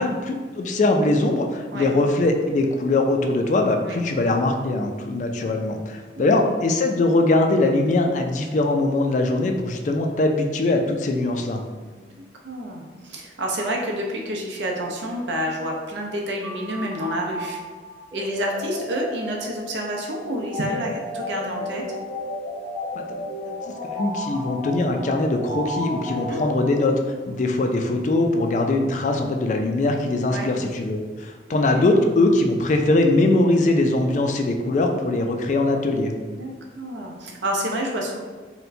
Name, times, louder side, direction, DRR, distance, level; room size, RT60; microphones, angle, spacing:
voice 1, 0.0-11.6 23.0-23.1 23.4-23.5 23.8-36.1, left 2 dB, 45° left, 4 dB, 0.3 m, -21 dB
voice 2, 6.1-6.5 11.9-12.0 12.4-17.6 18.1-21.8 26.1-26.4 30.3-30.5 31.5-31.9 36.3-38.2, equal, 85° right, 0 dB, 0.6 m, -29 dB
sound 1, 16.4-27.2, left 1 dB, ahead, 0.9 m, -33 dB
4.2 x 2.1 x 2.6 m, 1.4 s
head